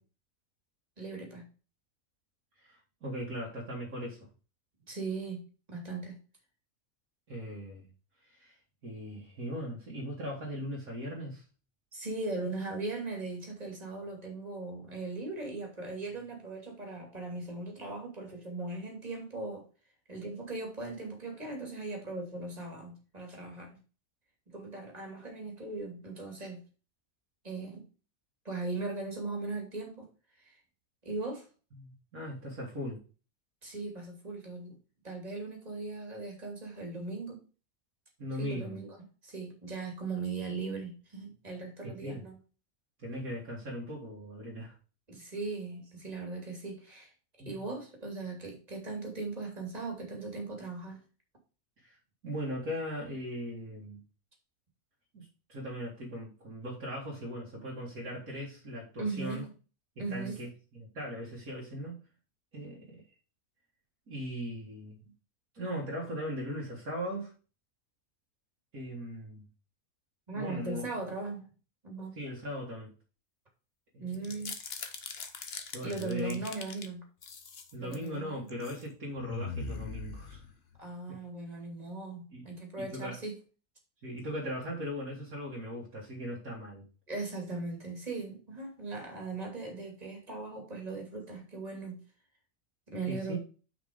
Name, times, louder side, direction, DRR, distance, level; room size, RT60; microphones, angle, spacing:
voice 1, 1.0-1.5 4.9-6.2 11.9-19.6 20.1-23.8 24.5-26.6 27.4-27.8 28.4-30.1 30.4-30.6 31.0-31.5 33.6-34.8 35.0-37.4 38.4-39.0 39.2-42.4 45.1-47.1 47.5-51.0 59.0-59.5 60.0-60.4 70.3-71.5 71.8-72.1 74.0-74.6 75.8-77.0 77.8-78.5 80.8-83.4 87.1-92.0 92.9-93.4, right 3 dB, 25° right, 1 dB, 2.7 m, -38 dB
voice 2, 2.6-4.3 7.3-7.9 8.3-8.6 8.8-11.4 31.8-33.0 38.2-38.8 41.8-42.2 43.0-44.8 47.4-47.5 51.8-52.0 52.2-54.0 55.1-59.4 60.1-62.0 62.5-63.0 64.1-65.0 65.5-67.3 68.7-69.4 70.3-70.8 72.1-72.9 73.9-74.2 75.7-76.4 77.7-80.4 82.3-82.5 82.8-83.2 84.0-86.8 93.1-93.4, equal, 80° right, -4 dB, 2.8 m, -39 dB
sound 1, 74.1-76.9 77.2-78.1 78.5-78.8 79.2-80.8, left 4 dB, 45° left, 1.2 m, -41 dB
6.3 x 5.1 x 5.1 m, 0.35 s
omnidirectional pair, 1.5 m